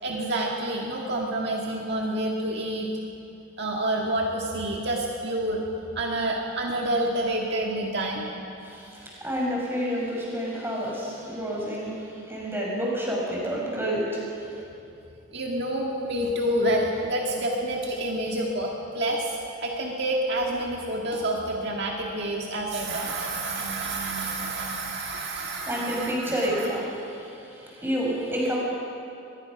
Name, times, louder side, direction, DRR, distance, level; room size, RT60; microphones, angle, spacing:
voice 1, 0.0-2.9 3.6-5.6 6.0-8.3 15.3-26.7, right 1 dB, 50° right, -1 dB, 1.8 m, -28 dB
voice 2, 8.6-11.9 12.3-14.1 25.7-27.2 27.7-28.6, equal, 10° right, -4 dB, 5.4 m, -29 dB
24.0 x 21.0 x 6.1 m, 2.8 s
head